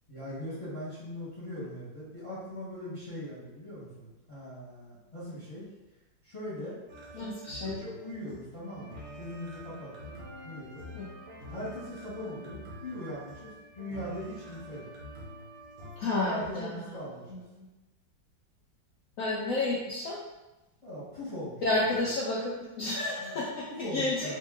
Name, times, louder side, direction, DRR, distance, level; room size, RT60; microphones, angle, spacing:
voice 1, 0.1-5.7 6.2-6.8 7.1-7.3 7.6-10.1 10.4-10.8 11.5-14.9 16.3-17.4 20.8-21.8 23.2-23.4 23.7-24.4, left 1 dB, 20° left, -10 dB, 1.0 m, -40 dB
sound 1, 6.9-16.5, equal, 60° right, 0.6 m, -47 dB
voice 2, 7.1-7.8 10.9-11.1 16.0-17.0 17.3-17.7 19.2-20.2 21.6-24.4, left 2 dB, 85° left, -5 dB, 0.7 m, -31 dB
2.8 x 2.8 x 3.7 m, 1.0 s
omnidirectional pair, 2.1 m